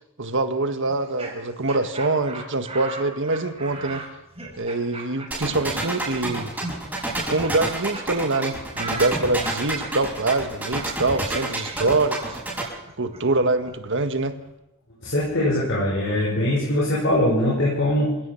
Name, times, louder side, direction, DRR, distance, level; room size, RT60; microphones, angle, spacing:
voice 1, 0.2-4.0 4.6-6.5 7.1-12.4 13.0-14.4, right 2 dB, 55° right, 8 dB, 1.6 m, -24 dB
Laughter, 0.9-8.0 8.3-8.4 8.7-14.5, right 2 dB, 25° right, 5.1 m, -39 dB
sound 1, 5.3-12.6, right 1 dB, 5° right, 6.9 m, -28 dB
voice 2, 15.0-18.2, left 1 dB, 55° left, -4 dB, 5.4 m, -22 dB
27.0 x 17.0 x 5.9 m, 0.90 s
head